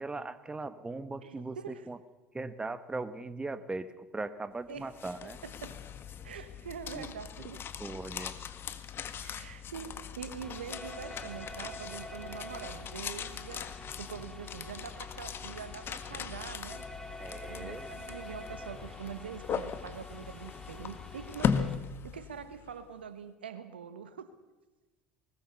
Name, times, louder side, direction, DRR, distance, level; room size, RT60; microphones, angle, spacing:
voice 1, 0.0-2.0 2.3-5.4 6.9-7.1 7.8-8.4 17.2-17.9, right 3 dB, 15° right, 14 dB, 1.3 m, -39 dB
voice 2, 1.2-1.8 4.7-4.9 5.2-5.8 6.2-7.7 9.1-16.9 17.2-24.3, right 7 dB, 90° right, 12 dB, 1.3 m, -44 dB
sound 1, 4.7-22.7, left 7 dB, 45° left, 1.6 m, -39 dB
sound 2, 10.4-21.8, left 1 dB, 10° left, 2.9 m, -47 dB
20.5 x 19.0 x 6.8 m, 1.1 s
hypercardioid pair, 70°, 5 cm